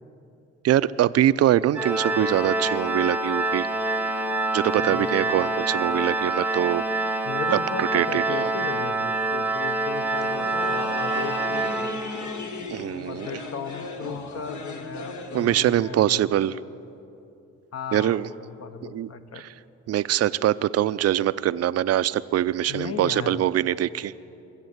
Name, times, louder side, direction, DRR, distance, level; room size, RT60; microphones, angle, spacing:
voice 1, 0.6-3.7 4.5-6.9 7.8-8.5 12.7-13.4 15.3-16.5 17.9-18.3 18.9-19.1 19.9-24.1, right 12 dB, 55° right, 16 dB, 0.5 m, -23 dB
Organ, 1.7-12.5, right 2 dB, 5° right, 0.9 m, -26 dB
voice 2, 4.8-5.4 7.2-12.0 13.1-16.6 17.7-19.4 22.7-23.4, left 6 dB, 55° left, 9 dB, 1.0 m, -36 dB
sound 1, 10.0-15.8, left 3 dB, 70° left, 1.5 m, -36 dB
22.5 x 7.5 x 8.0 m, 2.7 s
cardioid pair, 90°, 30 cm